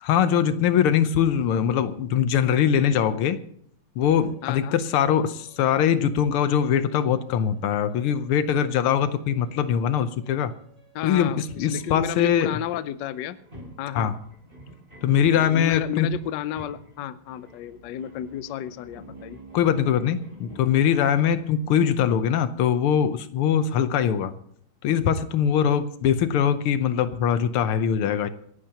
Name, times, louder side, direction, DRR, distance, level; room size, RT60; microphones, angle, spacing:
voice 1, 0.0-3.4 4.0-10.5 11.0-12.6 14.0-14.1 15.0-16.2 19.5-24.3 24.8-28.3, left 8 dB, 90° left, 12 dB, 1.8 m, -22 dB
sound 1, 4.0-21.8, right 1 dB, 25° right, 6.2 m, -50 dB
voice 2, 4.4-4.8 10.9-13.4 13.8-14.1 15.3-19.4, left 11 dB, 70° left, 14 dB, 1.2 m, -32 dB
27.5 x 11.5 x 2.9 m, 0.65 s
omnidirectional pair, 2.3 m